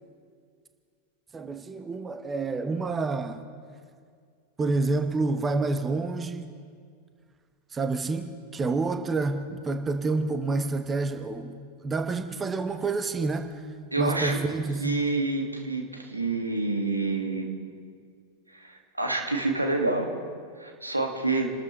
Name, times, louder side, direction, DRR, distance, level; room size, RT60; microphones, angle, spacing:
voice 1, 1.3-3.5 4.6-6.5 7.7-13.7 14.0-15.0, right 3 dB, 15° right, 7 dB, 1.0 m, -28 dB
voice 2, 13.9-14.4 14.8-17.5 18.5-20.1 20.6-21.5, right 3 dB, 85° right, 2 dB, 2.0 m, -28 dB
29.0 x 13.0 x 3.2 m, 2.1 s
figure-of-eight pair, 90°, 0 cm